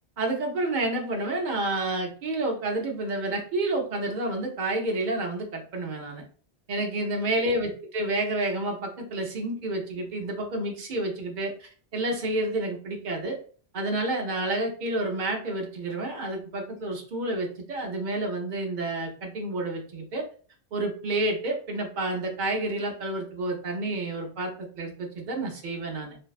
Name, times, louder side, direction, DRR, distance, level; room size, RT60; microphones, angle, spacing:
voice 1, 0.2-6.2 6.7-13.4 13.7-20.2 20.7-26.2, right 2 dB, 55° right, 2 dB, 0.6 m, -29 dB
2.5 x 2.1 x 2.3 m, 0.42 s
omnidirectional pair, 1.1 m